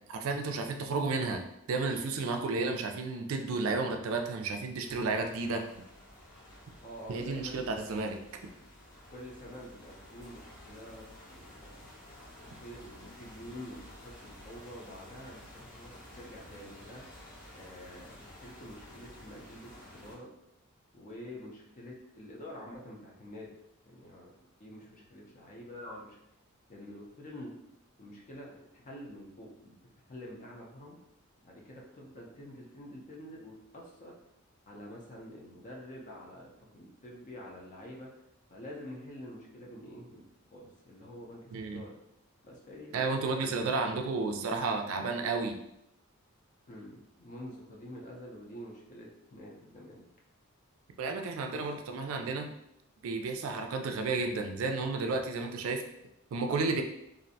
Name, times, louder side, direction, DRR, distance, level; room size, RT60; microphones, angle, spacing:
voice 1, 0.1-5.7 7.1-8.2 41.5-41.8 42.9-45.6 51.0-52.5 53.0-55.8 56.3-56.8, right 3 dB, 75° right, 5 dB, 0.3 m, -32 dB
sound 1, 4.8-20.2, left 1 dB, 70° left, 0.9 m, -52 dB
voice 2, 6.8-8.0 9.1-11.8 12.6-17.0 17.5-20.3 20.9-23.5 23.9-24.3 24.6-26.2 26.7-27.5 28.0-29.8 30.1-31.0 31.4-34.1 34.7-38.1 38.5-40.2 40.5-41.9 42.4-44.1 46.7-50.1 51.5-51.6, left 1 dB, 40° left, -2 dB, 0.5 m, -47 dB
2.5 x 2.0 x 2.6 m, 0.80 s
head